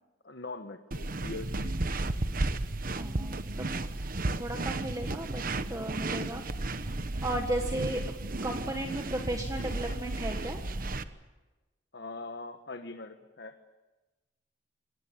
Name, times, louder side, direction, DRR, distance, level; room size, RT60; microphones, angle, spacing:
voice 1, 0.2-1.7 11.9-13.5, left 3 dB, 65° left, 7 dB, 1.3 m, -42 dB
sound 1, 0.9-11.0, right 2 dB, 50° right, 1.1 m, -33 dB
voice 2, 2.8-3.7 4.4-5.4 5.7-6.9 7.2-8.0 8.4-10.6, right 1 dB, 20° right, 3 dB, 1.7 m, -35 dB
28.0 x 18.5 x 8.8 m, 1.2 s
head